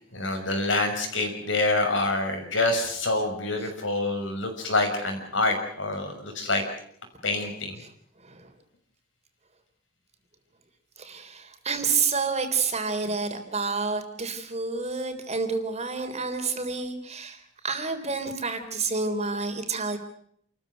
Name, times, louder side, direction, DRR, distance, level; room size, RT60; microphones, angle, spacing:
voice 1, 0.1-6.6 7.2-7.8, left 2 dB, 80° left, 4 dB, 6.4 m, -26 dB
voice 2, 11.0-20.0, right 4 dB, 35° right, 6 dB, 3.5 m, -29 dB
28.5 x 14.5 x 9.2 m, 0.66 s
head